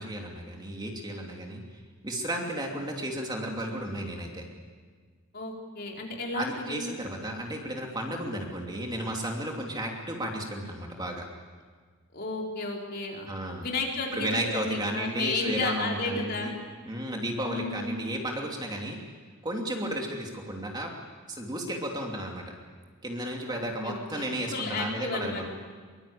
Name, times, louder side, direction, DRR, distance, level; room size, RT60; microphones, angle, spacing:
voice 1, 0.0-1.6 2.0-4.5 6.3-11.3 13.3-13.6 14.1-16.5 16.9-19.0 19.4-20.9 21.3-22.4 23.0-25.5, right 1 dB, 20° right, 0 dB, 2.9 m, -33 dB
voice 2, 5.3-6.9 12.1-13.3 13.6-16.5 17.4-18.0 23.4-25.4, left 3 dB, 45° left, -1 dB, 4.6 m, -33 dB
23.5 x 23.0 x 8.6 m, 1.5 s
head